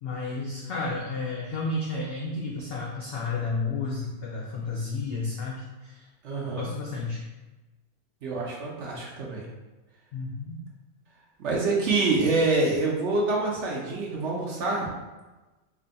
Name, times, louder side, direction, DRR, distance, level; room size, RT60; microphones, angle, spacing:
voice 1, 0.0-6.0 6.5-7.2 10.1-10.6, left 3 dB, 85° left, -2 dB, 0.5 m, -32 dB
voice 2, 6.2-6.7 8.2-9.5 11.4-14.9, right 3 dB, 60° right, -3 dB, 0.8 m, -26 dB
3.8 x 3.4 x 2.2 m, 1.2 s
omnidirectional pair, 1.6 m